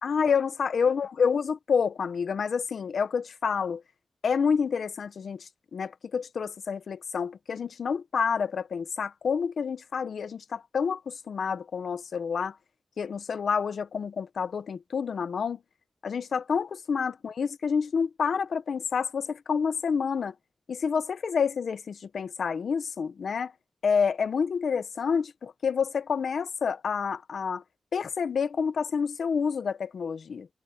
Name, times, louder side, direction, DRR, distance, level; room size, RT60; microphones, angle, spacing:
voice 1, 0.0-3.8 4.2-12.6 13.0-15.6 16.0-20.3 20.7-23.5 23.8-27.6 27.9-30.5, left 6 dB, 70° left, 0.9 m, -28 dB
wide cardioid pair, 175°, 0 cm